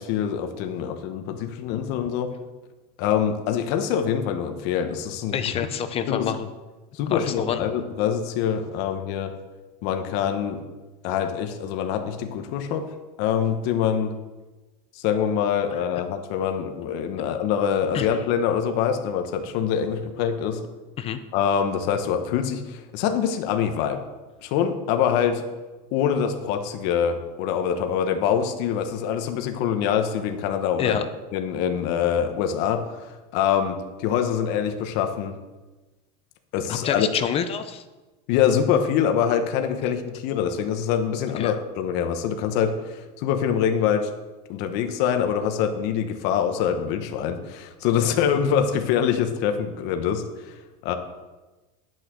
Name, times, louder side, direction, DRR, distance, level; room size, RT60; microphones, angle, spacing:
voice 1, 0.0-2.3 3.0-5.5 6.1-6.3 6.9-9.4 9.8-10.6 11.0-12.9 13.2-14.1 14.9-20.6 21.3-24.0 24.4-25.5 25.9-31.0 31.3-35.4 36.5-37.1 38.3-44.1 44.5-50.6 50.8-50.9, left 8 dB, 55° left, 6 dB, 1.1 m, -24 dB
voice 2, 5.3-6.5 7.1-7.6 17.9-18.1 21.0-21.2 30.8-31.0 36.7-37.8 41.4-41.5, left 8 dB, 25° left, 10 dB, 0.6 m, -27 dB
11.0 x 6.5 x 6.1 m, 1.2 s
supercardioid pair, 155°, 21 cm